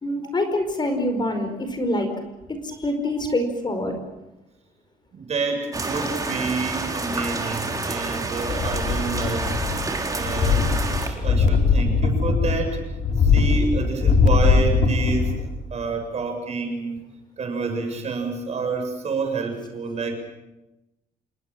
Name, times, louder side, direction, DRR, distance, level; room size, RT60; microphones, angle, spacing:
voice 1, 0.0-2.1 2.5-4.0, left 1 dB, 30° left, 7 dB, 5.0 m, -25 dB
voice 2, 5.1-9.5 10.0-10.7 11.0-12.8 13.2-17.0 17.4-20.2, right 4 dB, 45° right, 4 dB, 7.2 m, -28 dB
sound 1, 5.7-11.1, right 3 dB, 25° right, 3.9 m, -28 dB
sound 2, 8.5-9.9 10.2-15.5 15.9-16.0, left 4 dB, 65° left, 4.3 m, -21 dB
28.0 x 19.5 x 7.5 m, 0.95 s
cardioid pair, 100°, 15 cm